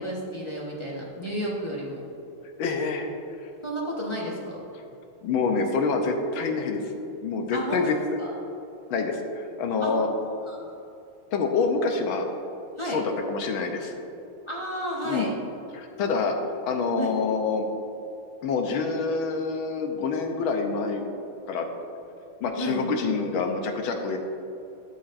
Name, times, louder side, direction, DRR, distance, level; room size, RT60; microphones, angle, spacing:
voice 1, 0.0-2.0 3.6-4.6 7.5-8.3 9.8-9.9 10.5-10.7 12.8-13.0 14.5-15.3 17.0-17.1 22.6-22.9, equal, 20° left, -5 dB, 0.8 m, -32 dB
voice 2, 2.6-3.1 5.2-6.8 7.2-7.9 8.9-10.1 11.3-12.3 12.8-13.9 15.0-15.3 15.7-16.4 16.6-17.7 18.4-21.1 21.5-21.7 22.4-24.2, left 4 dB, 75° left, 4 dB, 1.6 m, -26 dB
12.5 x 6.7 x 2.6 m, 2.9 s
omnidirectional pair, 2.4 m